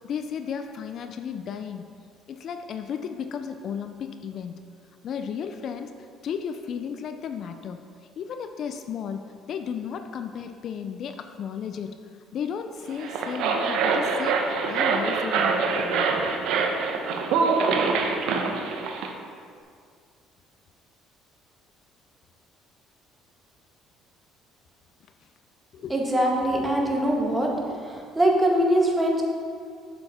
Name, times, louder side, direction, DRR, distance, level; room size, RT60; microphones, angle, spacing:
voice 1, 0.0-1.9 2.3-4.6 5.0-5.9 6.2-7.8 8.2-12.0 12.3-16.1 16.5-16.6 25.7-26.0, left 7 dB, 55° left, 8 dB, 0.4 m, -34 dB
sound 1, 12.9-19.1, right 4 dB, 75° right, 0.8 m, -25 dB
voice 2, 25.9-27.5 27.8-29.2, right 1 dB, 15° right, -1 dB, 1.6 m, -22 dB
7.9 x 7.0 x 4.3 m, 2.2 s
cardioid pair, 100°, 0 cm